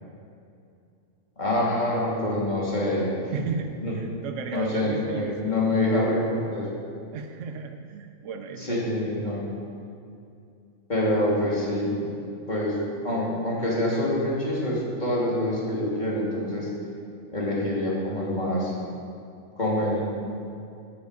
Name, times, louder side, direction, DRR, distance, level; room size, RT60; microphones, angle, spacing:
voice 1, 1.4-3.4 3.8-3.9 4.5-6.7 8.6-9.5 10.9-12.0 12.5-12.7 13.0-16.7 17.3-18.7 19.6-20.0, left 1 dB, 35° left, -5 dB, 3.0 m, -26 dB
voice 2, 3.3-5.6 7.1-9.1, right 5 dB, 70° right, 5 dB, 1.0 m, -35 dB
9.6 x 9.4 x 8.1 m, 2.5 s
omnidirectional pair, 1.4 m